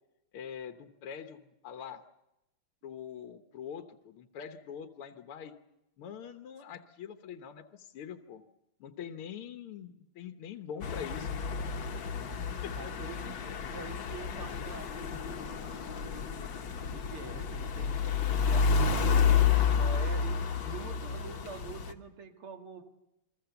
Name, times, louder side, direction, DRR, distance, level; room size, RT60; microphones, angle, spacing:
voice 1, 0.3-2.0 2.8-5.5 6.0-8.4 8.8-11.4 12.6-12.8 16.5-16.6, left 8 dB, 85° left, 7 dB, 2.0 m, -44 dB
sound 1, 10.8-21.9, left 6 dB, 60° left, 1.9 m, -30 dB
voice 2, 12.8-16.5 16.9-19.2 19.7-22.8, right 4 dB, 80° right, 4 dB, 2.9 m, -46 dB
28.0 x 22.5 x 7.0 m, 0.91 s
omnidirectional pair, 2.4 m